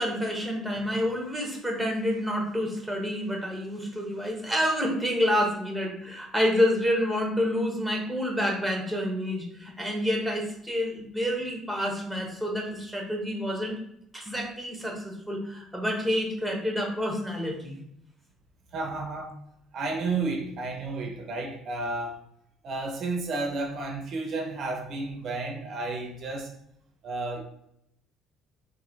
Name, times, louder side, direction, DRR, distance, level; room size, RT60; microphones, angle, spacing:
voice 1, 0.0-13.7 14.1-17.8, equal, ahead, 1.0 m, -28 dB
voice 2, 18.7-19.4 19.7-22.2 22.6-26.6 27.0-27.4, right 3 dB, 55° right, 0.6 m, -32 dB
3.0 x 2.6 x 3.9 m
cardioid pair, 105°, 0 cm